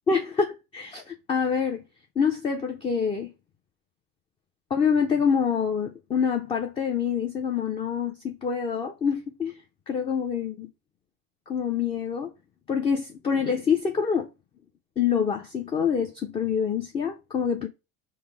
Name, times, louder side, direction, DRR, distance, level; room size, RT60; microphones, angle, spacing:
voice 1, 0.1-1.8 2.2-3.3 4.7-9.6 9.9-10.7 11.5-12.3 12.7-14.3 15.0-17.7, left 6 dB, 20° left, 0.4 m, -26 dB
5.5 x 2.0 x 4.5 m
cardioid pair, 145°, 30 cm